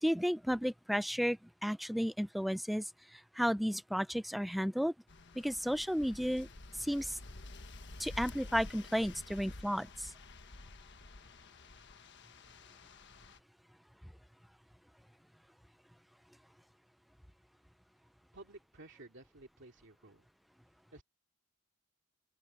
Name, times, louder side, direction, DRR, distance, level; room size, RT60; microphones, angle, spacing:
voice 1, 0.0-4.9 5.4-6.5 6.8-7.2 8.0-10.1, equal, ahead, 0.3 m, -33 dB
sound 1, 5.1-13.4, left 2 dB, 60° left, 1.4 m, -50 dB
voice 2, 18.3-20.3 20.9-21.0, right 2 dB, 60° right, 2.5 m, -54 dB
open air
head